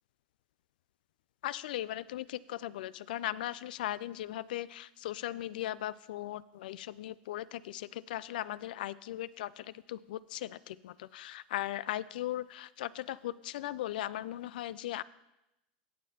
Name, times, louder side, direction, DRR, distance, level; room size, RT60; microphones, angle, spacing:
voice 1, 1.4-15.0, left 14 dB, 75° left, 18 dB, 0.3 m, -38 dB
16.0 x 6.5 x 2.9 m, 0.89 s
hypercardioid pair, 100°, 5 cm